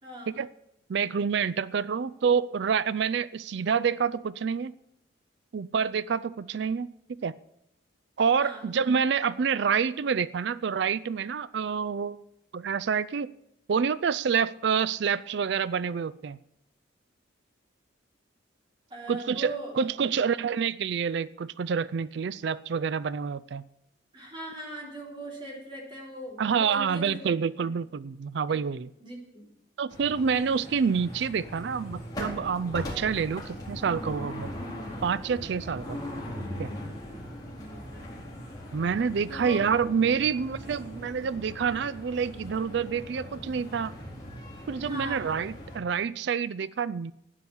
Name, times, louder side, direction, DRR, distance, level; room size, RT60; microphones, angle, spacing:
voice 1, 0.0-0.3 8.4-8.7 18.9-19.9 24.1-27.2 27.6-27.7 28.5-28.6 29.0-29.5 37.4-38.2 39.3-39.7 44.9-45.2, right 1 dB, 25° right, -2 dB, 3.6 m, -40 dB
voice 2, 0.9-4.7 5.5-7.3 8.2-12.2 12.5-13.3 13.7-16.4 19.1-23.6 26.4-28.9 29.8-34.5 35.0-36.0 36.6-36.7 38.7-43.9 44.7-47.1, right 6 dB, 60° right, 18 dB, 0.4 m, -27 dB
sound 1, 29.9-45.8, equal, 20° left, 4.1 m, -40 dB
12.5 x 9.8 x 7.1 m, 0.81 s
head